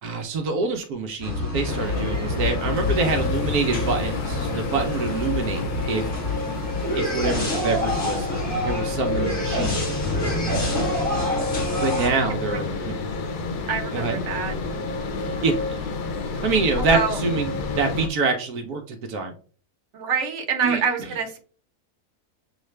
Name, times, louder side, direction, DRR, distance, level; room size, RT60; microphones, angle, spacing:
voice 1, 0.0-6.1 6.9-8.3 8.6-9.8 11.8-12.9 13.9-14.2 15.4-15.5 16.4-19.3 20.6-20.8, right 4 dB, 75° right, 3 dB, 1.2 m, -26 dB
sound 1, 1.2-12.1, left 2 dB, 35° left, 1.5 m, -27 dB
sound 2, 1.7-18.1, left 3 dB, 85° left, 1.3 m, -29 dB
voice 2, 13.7-14.5 16.8-17.2 19.9-21.4, right 6 dB, 55° right, 3 dB, 1.2 m, -26 dB
7.1 x 2.4 x 3.2 m, 0.40 s
omnidirectional pair, 1.6 m